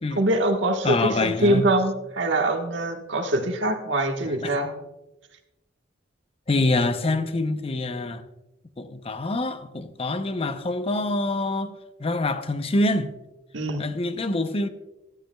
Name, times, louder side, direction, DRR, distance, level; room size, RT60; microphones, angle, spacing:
voice 1, 0.1-4.7 13.5-13.8, right 1 dB, 75° right, 1.3 m, -24 dB
voice 2, 0.8-1.7 4.4-4.5 6.5-8.2 8.8-13.2 13.8-14.7, left 2 dB, 30° left, 0.6 m, -25 dB
14.5 x 11.5 x 2.3 m
head